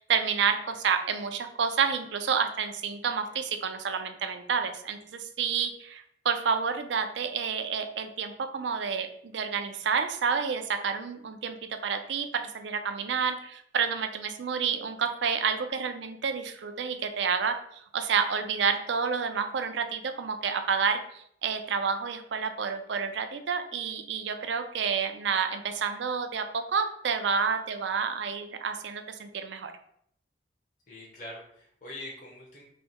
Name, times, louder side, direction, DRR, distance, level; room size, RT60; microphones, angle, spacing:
voice 1, 0.0-29.7, right 6 dB, 75° right, 7 dB, 0.5 m, -29 dB
voice 2, 30.9-32.6, left 1 dB, 40° left, -4 dB, 0.9 m, -43 dB
3.2 x 2.7 x 4.2 m, 0.68 s
head